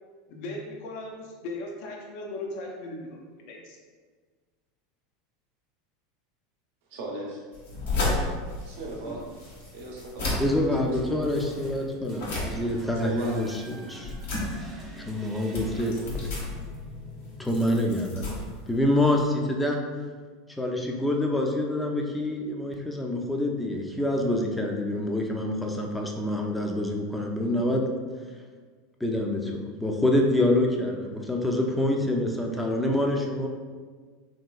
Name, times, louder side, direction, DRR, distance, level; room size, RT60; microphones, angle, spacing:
voice 1, 0.3-3.2 3.5-3.8, left 2 dB, 60° left, 0 dB, 0.5 m, -37 dB
voice 2, 6.9-7.4 8.6-9.2 9.7-11.5 13.0-13.3, right 2 dB, 70° right, -2 dB, 0.7 m, -38 dB
sound 1, 7.5-19.3, left 2 dB, 80° left, 0.9 m, -34 dB
voice 3, 10.4-13.6 13.9-14.1 15.0-15.9 16.2-16.4 17.4-18.3 18.7-19.8 20.6-27.9 29.0-33.5, left 1 dB, 5° left, 1 dB, 0.5 m, -26 dB
sound 2, 10.5-18.7, right 1 dB, 35° right, 0.7 m, -46 dB
3.0 x 2.9 x 2.3 m, 1.5 s
hypercardioid pair, 95°, 0 cm